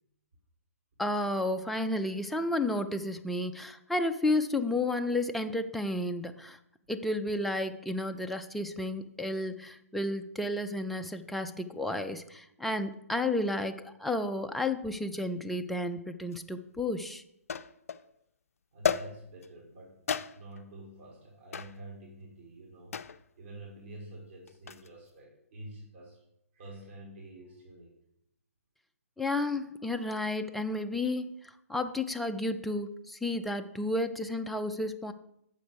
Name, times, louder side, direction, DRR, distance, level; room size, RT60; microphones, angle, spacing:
voice 1, 1.0-6.6 6.9-17.2 29.2-31.3 31.7-35.1, left 2 dB, ahead, 6 dB, 0.4 m, -32 dB
sound 1, 16.3-16.4 17.5-18.1 18.8-19.5 20.1-20.6 21.5-21.8 22.9-23.3 24.5-24.9, left 7 dB, 65° left, 0.4 m, -33 dB
voice 2, 18.7-19.9 20.3-23.0 23.4-26.2 26.5-28.0, right 1 dB, 50° right, -2 dB, 2.3 m, -48 dB
6.8 x 5.1 x 6.6 m, 0.78 s
figure-of-eight pair, 130°, 8 cm